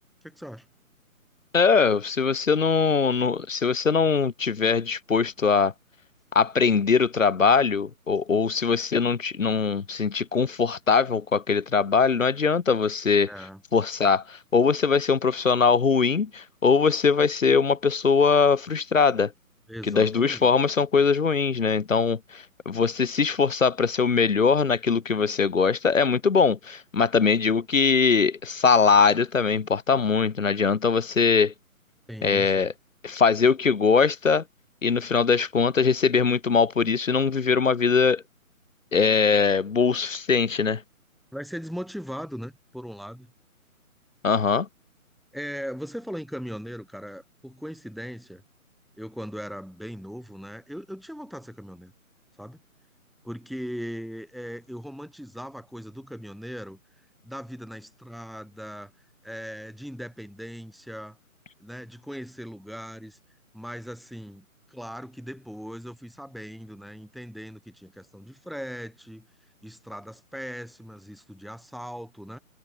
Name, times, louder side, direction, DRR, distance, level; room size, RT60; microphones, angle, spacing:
voice 1, 0.2-0.7 13.3-13.6 19.7-20.5 32.1-32.7 41.3-43.3 45.3-48.4 49.0-51.9 52.4-52.6 53.2-56.8 57.2-58.9 59.2-61.2 61.6-63.2 63.5-69.3 69.6-72.4, equal, ahead, 8.0 m, -39 dB
voice 2, 1.5-5.7 6.3-13.3 13.7-19.3 19.9-31.5 32.2-32.7 33.0-34.4 34.8-38.2 38.9-40.8 44.2-44.7, left 5 dB, 60° left, 1.3 m, -21 dB
figure-of-eight pair, 145°, 43 cm